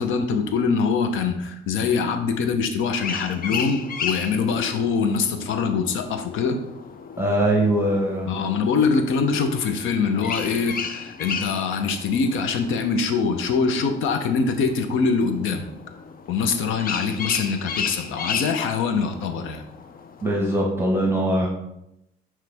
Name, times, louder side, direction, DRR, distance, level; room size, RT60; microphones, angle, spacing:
voice 1, 0.0-6.6 8.3-15.7 16.3-19.6, left 5 dB, 85° left, 7 dB, 0.7 m, -23 dB
sound 1, 2.9-20.6, left 6 dB, 45° left, 0.6 m, -35 dB
voice 2, 7.2-8.3 20.2-21.5, right 1 dB, 10° right, -1 dB, 1.2 m, -21 dB
9.4 x 3.2 x 3.4 m, 0.83 s
cardioid pair, 90°, 20 cm